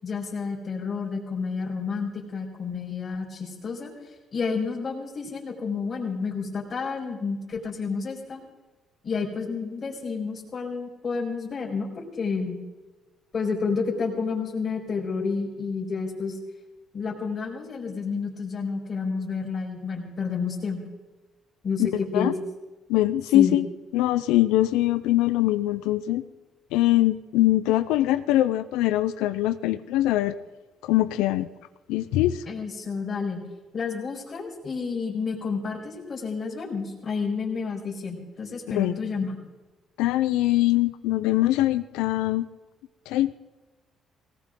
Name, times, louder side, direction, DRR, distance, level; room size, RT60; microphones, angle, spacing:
voice 1, 0.0-3.9 4.3-8.4 9.0-12.6 13.3-16.4 16.9-20.8 21.6-22.3 23.3-23.6 32.5-33.4 33.7-39.4, left 5 dB, 45° left, -3 dB, 4.6 m, -30 dB
voice 2, 21.8-22.3 22.9-23.7 23.9-26.2 26.7-30.3 30.8-31.5 31.9-32.4 38.8-39.0 40.0-42.5 43.1-43.3, left 15 dB, 90° left, 14 dB, 0.6 m, -22 dB
18.5 x 17.5 x 3.9 m, 1.2 s
supercardioid pair, 75°, 0 cm